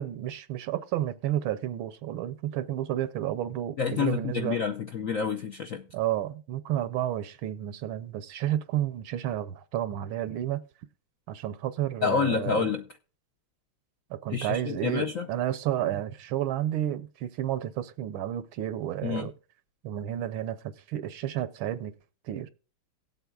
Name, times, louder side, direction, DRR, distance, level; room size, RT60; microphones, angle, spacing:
voice 1, 0.0-4.6 5.9-10.6 11.3-12.7 14.2-19.3 19.8-20.6 20.9-21.9 22.3-22.5, right 12 dB, 75° right, 1.5 m, -31 dB
voice 2, 3.8-5.8 12.0-12.9 14.3-15.3 19.0-19.3, left 6 dB, 65° left, 0.8 m, -28 dB
18.0 x 8.1 x 2.4 m
omnidirectional pair, 2.3 m